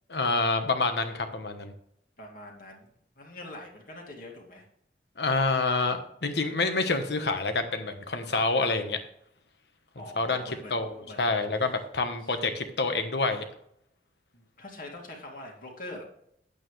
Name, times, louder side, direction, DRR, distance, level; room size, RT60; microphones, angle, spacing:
voice 1, 0.1-1.7 5.2-9.0 10.2-10.9 11.2-13.4, left 3 dB, 70° left, 7 dB, 1.2 m, -27 dB
voice 2, 2.2-2.9 3.2-4.6 9.9-11.5 12.2-12.3 14.3-16.0, left 1 dB, 50° left, 0 dB, 2.3 m, -44 dB
9.0 x 8.5 x 3.2 m, 0.71 s
head